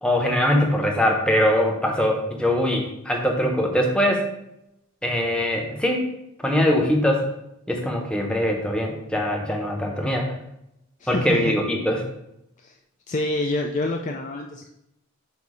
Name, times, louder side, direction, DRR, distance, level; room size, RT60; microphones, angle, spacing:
voice 1, 0.0-4.3 5.0-6.0 6.4-7.3 7.7-10.3 11.1-12.0, equal, 5° left, 1 dB, 0.8 m, -22 dB
voice 2, 11.0-11.5 12.6-12.8 13.1-14.7, left 2 dB, 35° left, 2 dB, 0.4 m, -27 dB
8.1 x 2.7 x 4.9 m, 0.84 s
head